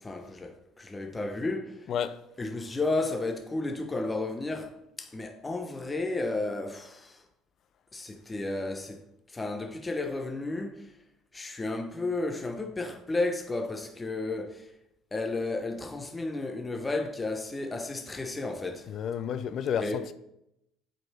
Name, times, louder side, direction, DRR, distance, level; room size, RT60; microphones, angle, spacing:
voice 1, 0.0-1.9 2.4-7.2 7.9-9.0 9.3-10.9 11.3-14.7 15.1-18.9 19.8-20.1, left 2 dB, 20° left, 0.9 m, -33 dB
voice 2, 1.9-2.2 18.9-20.1, left 8 dB, 55° left, 0.6 m, -31 dB
7.8 x 5.3 x 5.4 m
supercardioid pair, 80°, 0 cm